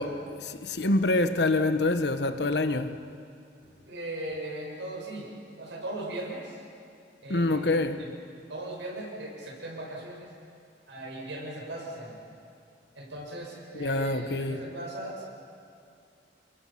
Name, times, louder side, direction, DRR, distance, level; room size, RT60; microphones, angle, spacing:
voice 1, 0.0-3.0 7.3-8.0 13.8-14.6, left 2 dB, 70° left, 1.2 m, -26 dB
voice 2, 3.8-5.3 5.6-6.6 7.2-8.1 8.5-10.3 10.9-12.2 12.9-15.2, right 1 dB, 85° right, 6.8 m, -38 dB
29.5 x 22.0 x 5.9 m
head